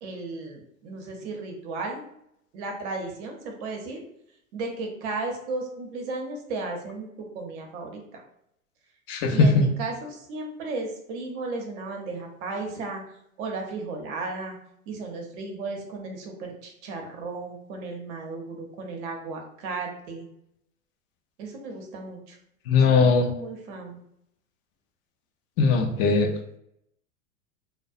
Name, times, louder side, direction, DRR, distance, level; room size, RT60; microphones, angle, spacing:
voice 1, 0.0-2.1 2.5-4.0 4.5-8.2 9.3-13.0 13.4-14.6 14.9-20.3 21.4-22.4 22.9-24.0, right 3 dB, 55° right, 2 dB, 0.8 m, -35 dB
voice 2, 9.1-9.7 22.7-23.3 25.6-26.3, left 4 dB, 40° left, 5 dB, 0.5 m, -19 dB
2.2 x 2.1 x 2.6 m, 0.76 s
hypercardioid pair, 105°, 43 cm